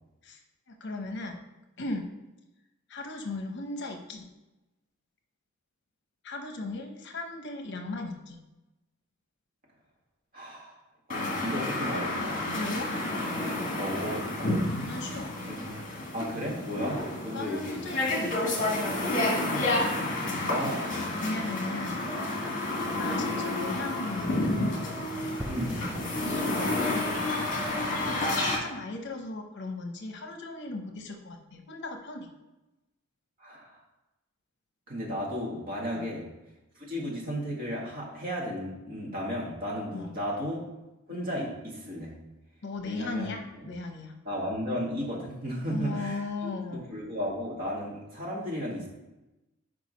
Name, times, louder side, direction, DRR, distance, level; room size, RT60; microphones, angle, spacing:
voice 1, 0.7-1.4 1.8-2.1 2.9-4.3 6.2-8.4 12.5-12.9 14.9-15.4 17.3-18.4 21.2-22.1 23.0-24.5 26.2-27.0 28.0-32.3 35.9-36.2 39.9-40.2 42.6-44.1 45.7-46.9, left 2 dB, 55° left, 4 dB, 0.8 m, -37 dB
voice 2, 10.3-10.8 11.1-12.4 13.8-14.6 15.0-15.8 16.1-17.8 19.5-21.0 25.5-25.8 33.4-33.8 34.9-36.3 36.8-40.6 41.1-42.1 42.8-43.3 43.6-43.7 44.2-48.9, equal, 45° right, -3 dB, 1.7 m, -34 dB
sound 1, 11.1-28.6, left 2 dB, 40° left, 1.4 m, -30 dB
sound 2, 23.1-28.0, right 1 dB, 5° right, 0.3 m, -43 dB
4.8 x 4.7 x 5.2 m, 1.0 s
head